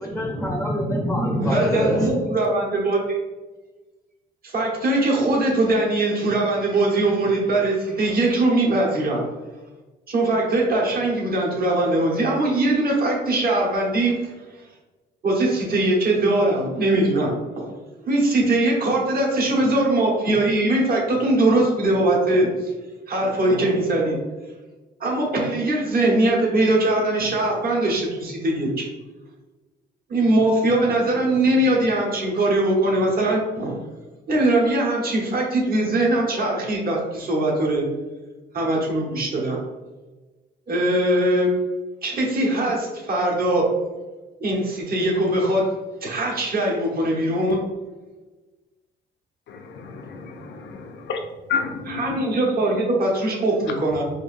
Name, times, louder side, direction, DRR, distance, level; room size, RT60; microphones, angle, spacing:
voice 1, 0.0-2.1, equal, 5° left, -1 dB, 0.6 m, -24 dB
voice 2, 1.4-3.0 4.4-9.2 10.1-14.3 15.2-17.7 18.1-22.7 23.1-24.2 25.0-28.8 30.1-33.7 34.3-37.8 38.5-39.6 40.7-41.5 42.0-43.6 44.4-45.6 46.0-47.6 51.9-54.0, right 1 dB, 50° right, -2 dB, 1.2 m, -21 dB
voice 3, 49.5-51.2 51.5-52.2 53.6-54.0, left 6 dB, 65° left, 3 dB, 0.6 m, -31 dB
4.7 x 2.6 x 2.6 m, 1.2 s
cardioid pair, 90°, 20 cm